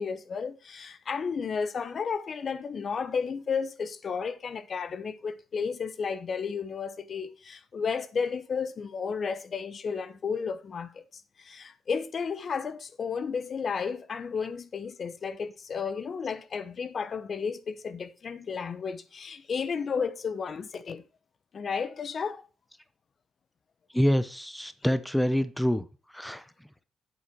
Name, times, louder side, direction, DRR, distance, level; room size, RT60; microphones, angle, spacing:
voice 1, 0.0-11.0 11.4-21.0 21.5-22.4, left 5 dB, 45° left, 0.8 m, -33 dB
voice 2, 23.9-25.8 26.1-26.4, equal, 5° left, 0.7 m, -26 dB
8.2 x 7.7 x 4.4 m
cardioid pair, 90°, 0 cm